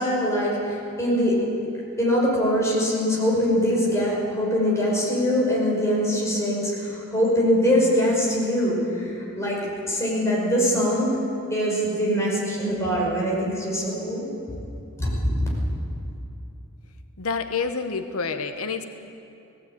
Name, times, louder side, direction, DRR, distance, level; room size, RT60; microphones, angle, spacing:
voice 1, 0.0-1.4 2.0-11.1 11.5-14.3 15.0-15.5, equal, 15° left, -5 dB, 5.5 m, -23 dB
voice 2, 17.2-18.8, left 5 dB, 90° left, 7 dB, 1.0 m, -28 dB
18.0 x 16.0 x 9.0 m, 2.8 s
head